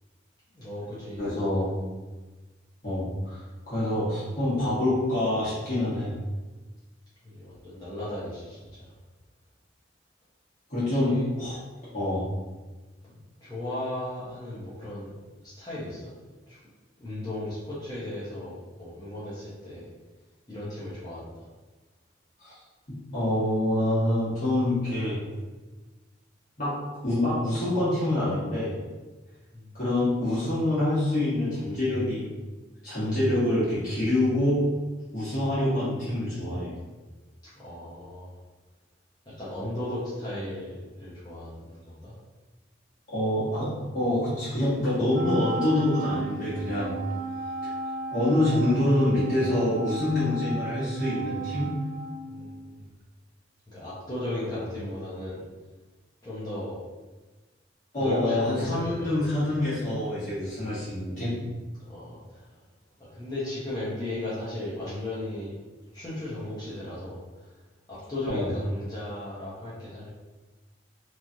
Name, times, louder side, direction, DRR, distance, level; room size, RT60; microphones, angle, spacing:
voice 1, 0.5-1.7 7.2-8.9 10.9-11.3 13.0-13.1 13.4-15.2 15.4-16.0 16.5-16.6 17.0-19.9 20.5-21.5 29.5-29.6 37.6-38.4 39.3-42.1 52.3-52.8 53.7-55.4 56.2-56.8 58.0-59.1 61.7-62.4 63.0-65.5 65.9-67.5 67.9-70.1, left 1 dB, 20° left, -10 dB, 0.6 m, -36 dB
voice 2, 1.2-1.7 2.8-6.1 10.7-11.6 11.9-12.3 22.4-22.5 22.9-25.2 26.6-26.7 27.0-28.8 29.7-32.3 32.8-34.7 35.1-36.7 43.1-46.9 47.6-47.7 48.1-51.7 57.9-61.3 68.3-68.5, left 1 dB, 45° left, -12 dB, 1.2 m, -26 dB
Wind instrument woodwind instrument, 45.1-52.8, right 3 dB, 50° right, 0.3 m, -35 dB
3.0 x 2.4 x 2.6 m, 1.2 s
head